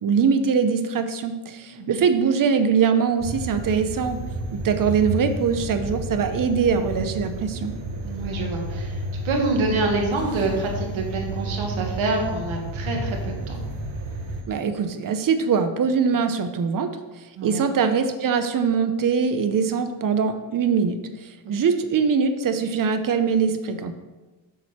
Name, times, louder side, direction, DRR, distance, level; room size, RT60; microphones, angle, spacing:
voice 1, 0.0-4.2 4.5-7.7 14.5-16.9 17.4-23.9, right 6 dB, 45° right, 8 dB, 0.8 m, -22 dB
voice 2, 1.8-2.1 8.0-13.6 17.4-17.7, right 3 dB, 85° right, 1 dB, 1.8 m, -26 dB
sound 1, 3.2-14.4, right 1 dB, 65° right, 1.3 m, -31 dB
7.4 x 6.2 x 4.4 m, 1.2 s
cardioid pair, 145°, 46 cm